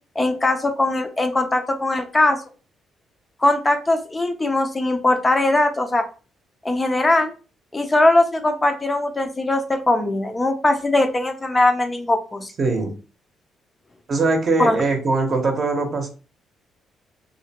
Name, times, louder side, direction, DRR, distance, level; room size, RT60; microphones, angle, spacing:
voice 1, 0.2-2.4 3.4-6.0 6.6-7.3 7.7-12.5 14.6-14.8, left 2 dB, 20° left, 5 dB, 0.4 m, -20 dB
voice 2, 12.6-12.9 14.1-16.1, right 3 dB, 45° right, 4 dB, 0.7 m, -21 dB
2.4 x 2.1 x 2.8 m, 0.35 s
cardioid pair, 90°, 0 cm